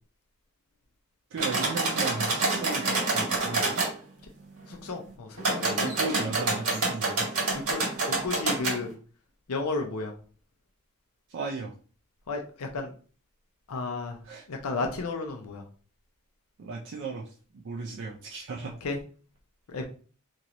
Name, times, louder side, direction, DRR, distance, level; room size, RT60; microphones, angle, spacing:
voice 1, 1.3-3.8 5.8-7.3 11.3-11.7 14.2-14.4 16.6-18.7, right 4 dB, 55° right, -1 dB, 0.4 m, -36 dB
sound 1, 1.4-3.9 5.4-8.8, right 3 dB, 75° right, 1.6 m, -27 dB
voice 2, 4.7-5.9 7.5-8.9 9.5-10.1 12.3-12.9 13.7-14.2 14.5-15.6 18.8-19.0 19.7-19.9, left 3 dB, 75° left, 3 dB, 0.5 m, -33 dB
3.0 x 2.9 x 2.5 m, 0.40 s
head